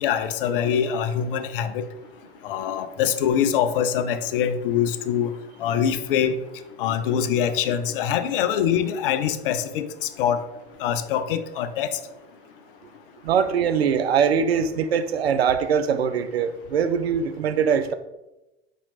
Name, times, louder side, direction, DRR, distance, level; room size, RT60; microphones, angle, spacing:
voice 1, 0.0-1.9 2.4-5.3 5.6-6.3 6.8-10.4 10.8-12.0, left 8 dB, 60° left, 10 dB, 0.4 m, -24 dB
voice 2, 13.2-17.9, right 7 dB, 75° right, 10 dB, 0.5 m, -22 dB
4.5 x 2.9 x 4.1 m, 0.97 s
figure-of-eight pair, 75°, 31 cm